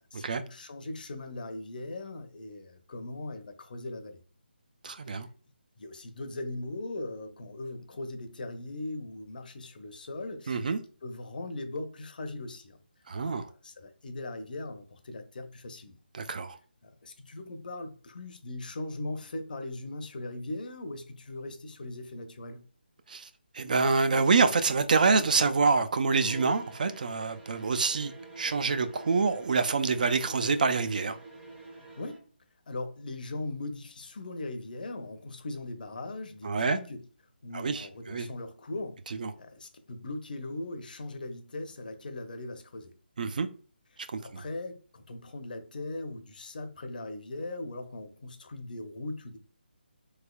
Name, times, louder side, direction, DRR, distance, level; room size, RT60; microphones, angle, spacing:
voice 1, 0.2-4.2 5.8-10.6 11.0-12.8 13.2-16.0 16.8-22.6 32.0-32.2 32.7-37.0 37.4-39.0 39.4-42.9 44.2-49.4, left 2 dB, 55° left, 0.6 m, -39 dB
voice 2, 4.8-5.3 10.5-10.8 13.1-13.5 16.1-16.6 23.1-23.3 23.5-31.2 36.4-36.8 37.5-38.3 39.2-39.3 43.2-43.5 44.3-44.4, right 4 dB, 50° right, 0.4 m, -26 dB
sound 1, 26.1-32.3, right 3 dB, 5° right, 0.6 m, -46 dB
3.4 x 3.2 x 2.3 m
figure-of-eight pair, 160°, 6 cm